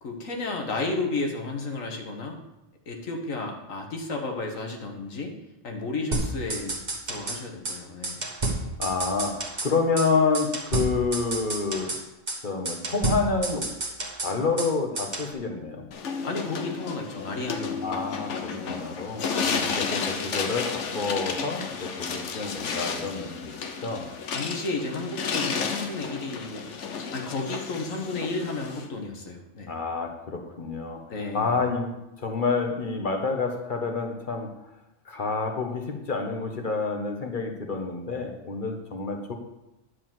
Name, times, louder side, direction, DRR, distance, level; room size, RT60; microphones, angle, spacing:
voice 1, 0.0-2.4 2.9-5.3 5.6-6.8 7.1-8.2 16.2-18.0 19.4-19.7 24.3-26.6 27.1-29.7 31.1-31.5, left 3 dB, 90° left, 2 dB, 1.8 m, -32 dB
sound 1, 6.1-7.4 7.7-7.8 8.0-9.7 10.0-10.1 10.3-12.0 12.3-12.4 12.7-14.7 15.0-15.3, right 2 dB, 35° right, 1.4 m, -30 dB
voice 2, 8.8-12.0 12.4-13.8 14.2-15.9 17.8-19.2 19.7-23.5 23.8-24.1 29.7-34.5 35.1-39.3, left 4 dB, 40° left, 4 dB, 1.4 m, -28 dB
sound 2, 15.9-28.9, left 5 dB, 70° left, 1.2 m, -32 dB
10.5 x 4.9 x 7.6 m, 0.93 s
omnidirectional pair, 1.3 m